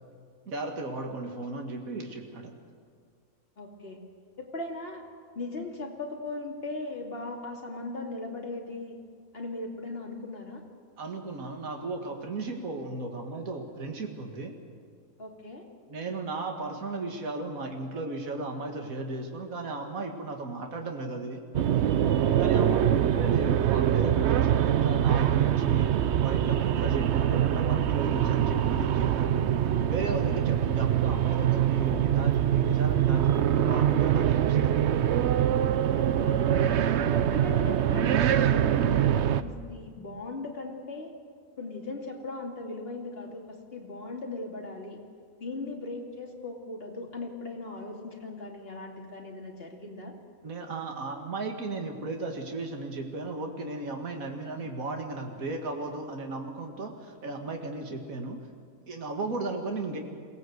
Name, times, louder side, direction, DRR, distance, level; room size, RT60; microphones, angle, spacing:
voice 1, 0.5-2.6 11.0-14.5 15.9-21.4 22.4-29.4 29.9-34.8 50.4-58.4 58.9-60.0, right 3 dB, 75° right, 3 dB, 2.2 m, -35 dB
voice 2, 3.6-4.0 4.4-5.0 5.3-9.0 9.3-10.6 15.2-15.6 22.6-23.1 35.9-36.5 37.3-41.1 41.6-45.0 45.4-50.1, left 2 dB, 45° left, 0 dB, 2.8 m, -38 dB
sound 1, 21.5-39.4, right 10 dB, 60° right, 0.9 m, -24 dB
23.0 x 17.5 x 7.9 m, 2.1 s
omnidirectional pair, 1.5 m